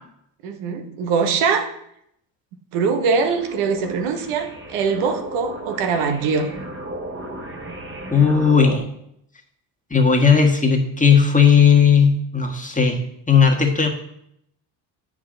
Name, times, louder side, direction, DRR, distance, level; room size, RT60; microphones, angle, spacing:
voice 1, 0.4-1.7 2.7-6.5, right 5 dB, 85° right, 6 dB, 1.1 m, -22 dB
sound 1, 3.0-8.8, right 1 dB, 25° right, 1.4 m, -35 dB
voice 2, 8.1-8.8 9.9-13.0 13.3-13.9, left 6 dB, 15° left, 2 dB, 1.5 m, -15 dB
7.9 x 6.4 x 3.8 m, 0.74 s
supercardioid pair, 65°, 50 cm